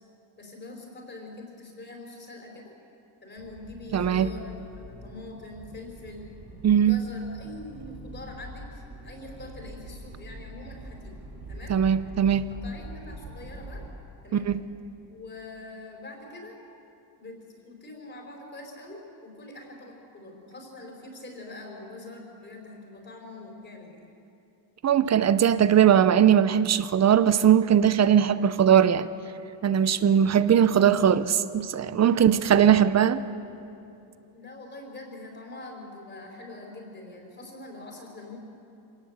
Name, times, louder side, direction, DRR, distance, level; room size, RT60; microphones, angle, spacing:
voice 1, 0.4-2.7 3.2-4.5 4.9-6.3 6.9-11.1 11.5-11.8 12.5-13.8 14.2-14.5 15.1-16.5 17.2-24.1 32.2-32.3 34.3-38.4, left 2 dB, 25° left, 1 dB, 4.5 m, -44 dB
Accelerating revving vroom, 3.4-13.9, right 1 dB, 60° right, 6.4 m, -43 dB
voice 2, 3.9-4.3 6.6-7.0 11.7-12.5 14.3-14.6 24.8-29.1 29.6-33.2, right 9 dB, 35° right, 15 dB, 0.7 m, -20 dB
25.5 x 18.0 x 8.1 m, 2.7 s
cardioid pair, 160°, 46 cm